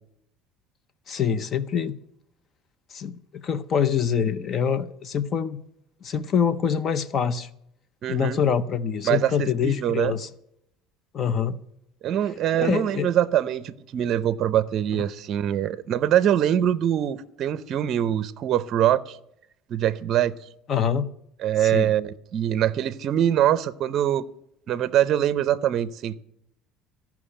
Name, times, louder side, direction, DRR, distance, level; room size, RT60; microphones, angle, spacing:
voice 1, 1.1-2.0 2.9-5.6 6.0-7.5 8.1-10.3 11.1-11.6 12.6-13.1 20.7-21.1 21.6-21.9, left 7 dB, 35° left, 0.6 m, -25 dB
voice 2, 8.0-8.4 9.0-10.1 12.0-19.2 19.7-20.4 21.4-24.2 24.7-26.2, right 11 dB, 45° right, 0.6 m, -23 dB
14.5 x 5.9 x 9.9 m
cardioid pair, 140°, 0 cm